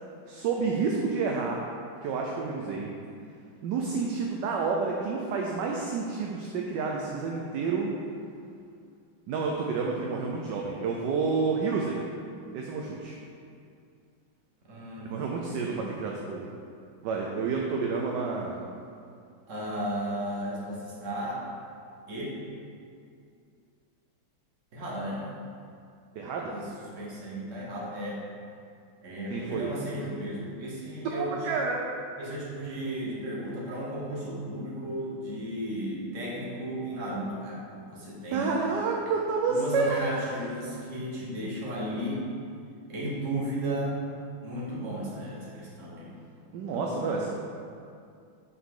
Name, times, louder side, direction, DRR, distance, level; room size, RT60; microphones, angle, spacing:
voice 1, 0.3-1.6 2.0-2.9 3.6-7.9 9.3-12.0 12.5-13.1 15.1-16.5 17.0-18.6 26.1-26.6 29.3-29.7 31.0-31.8 38.3-40.3 46.5-47.3, right 4 dB, 70° right, -1 dB, 1.1 m, -29 dB
voice 2, 14.7-15.1 15.5-15.9 19.5-21.4 22.1-22.4 24.7-25.2 26.5-26.7 26.9-28.2 29.0-31.3 32.2-37.6 37.9-38.6 39.5-42.3 42.9-44.0 44.4-46.1 46.7-47.3, right 1 dB, 40° right, -5 dB, 1.5 m, -34 dB
6.3 x 5.8 x 3.7 m, 2.4 s
omnidirectional pair, 2.2 m